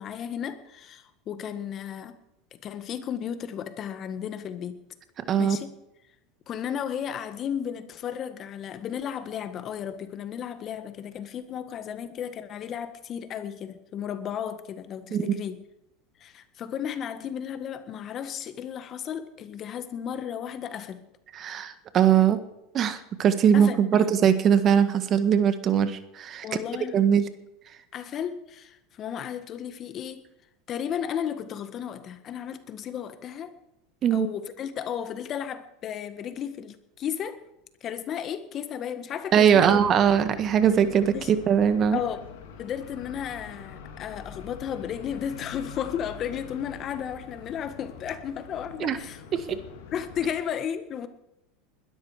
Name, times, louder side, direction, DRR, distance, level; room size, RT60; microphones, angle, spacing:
voice 1, 0.0-2.2 2.5-4.8 5.4-5.7 6.5-15.6 16.2-21.0 23.5-24.0 26.4-27.1 27.9-30.2 30.7-33.5 34.1-37.4 37.8-39.8 41.1-41.4 41.9-42.2 42.6-49.2 49.5-49.6 49.9-51.1, left 9 dB, 40° left, 11 dB, 1.6 m, -34 dB
voice 2, 21.3-22.4 22.7-26.5 26.9-27.2 34.0-34.3 39.3-42.0 48.8-49.0 49.3-49.4, right 8 dB, 40° right, 11 dB, 1.6 m, -21 dB
sound 1, 39.4-50.3, left 7 dB, 75° left, 3.0 m, -44 dB
21.0 x 13.0 x 5.0 m, 0.88 s
hypercardioid pair, 100°, 0 cm